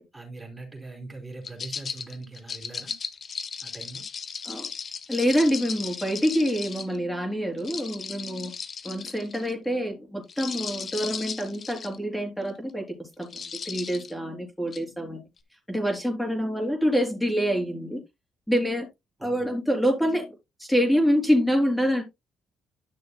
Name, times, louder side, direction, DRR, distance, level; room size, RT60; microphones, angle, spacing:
voice 1, 0.1-3.0 3.6-4.1 19.2-19.5, right 3 dB, 15° right, 3.7 m, -41 dB
sound 1, 1.4-7.0 7.6-9.5 10.2-12.0 12.5-12.7 13.2-14.1 14.7-14.8, left 6 dB, 45° left, 0.9 m, -36 dB
voice 2, 5.1-8.5 8.8-15.2 15.7-18.0 18.5-18.9 19.2-20.3 20.6-22.0, equal, 5° left, 3.5 m, -26 dB
12.0 x 6.3 x 2.2 m
cardioid pair, 90°, 0 cm